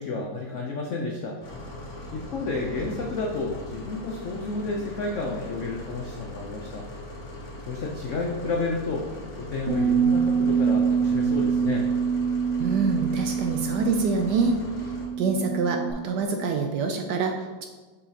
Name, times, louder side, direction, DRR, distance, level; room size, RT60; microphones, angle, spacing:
voice 1, 0.0-1.4 2.1-6.8 7.7-9.1 9.4-11.9, left 3 dB, 75° left, -1 dB, 0.6 m, -31 dB
sound 1, 1.4-15.1, left 1 dB, 50° left, 1.7 m, -40 dB
Bass guitar, 9.7-15.9, right 6 dB, 35° right, 1.3 m, -25 dB
voice 2, 12.6-14.5 15.2-17.7, right 4 dB, 70° right, 4 dB, 1.0 m, -25 dB
6.9 x 5.6 x 2.8 m, 1.3 s
omnidirectional pair, 2.2 m